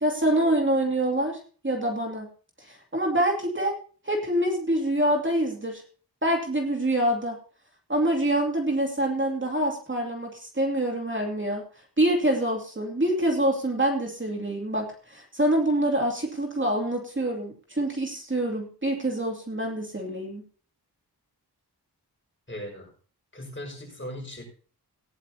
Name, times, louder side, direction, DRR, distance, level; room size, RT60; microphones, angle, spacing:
voice 1, 0.0-2.3 2.6-3.7 4.0-5.8 6.2-7.4 7.9-11.6 12.0-20.4, right 1 dB, 30° right, 1 dB, 2.6 m, -26 dB
voice 2, 22.5-22.9 23.3-24.5, left 1 dB, 30° left, 1 dB, 5.6 m, -38 dB
17.5 x 10.5 x 2.8 m, 0.40 s
wide cardioid pair, 75°, 40 cm